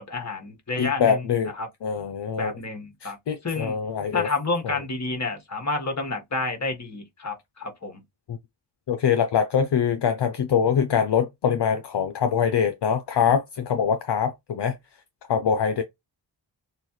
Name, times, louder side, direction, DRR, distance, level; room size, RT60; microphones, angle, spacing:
voice 1, 0.0-1.2 1.6-1.7 2.4-3.2 3.4-3.8 4.1-8.0, left 3 dB, 35° left, 1.6 m, -29 dB
voice 2, 0.8-1.5 1.8-2.5 3.0-4.3 4.6-4.8 8.3-8.4 8.9-14.8 15.3-15.8, left 7 dB, 65° left, 0.7 m, -24 dB
6.6 x 2.3 x 3.1 m
wide cardioid pair, 95°, 45 cm